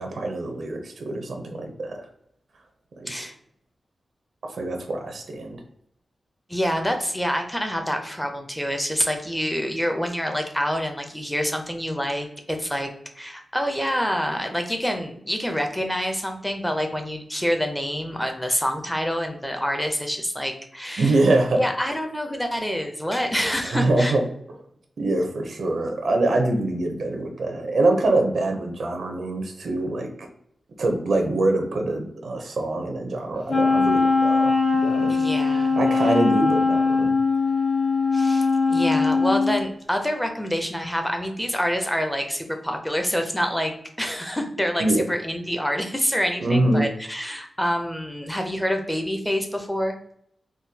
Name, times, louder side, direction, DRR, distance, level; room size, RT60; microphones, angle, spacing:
voice 1, 0.0-2.0 3.0-3.1 4.4-5.6 21.0-21.6 23.7-24.2 25.0-30.1 30.8-35.2 35.8-37.2 44.8-45.0 46.4-46.9, right 2 dB, 75° right, 4 dB, 0.6 m, -24 dB
voice 2, 6.5-12.9 13.2-21.2 21.6-24.1 35.1-35.8 38.1-50.0, equal, 5° left, 4 dB, 0.5 m, -27 dB
Wind instrument woodwind instrument, 33.5-39.6, left 4 dB, 75° left, 0.7 m, -21 dB
3.7 x 2.2 x 2.7 m, 0.72 s
wide cardioid pair, 125°, 0 cm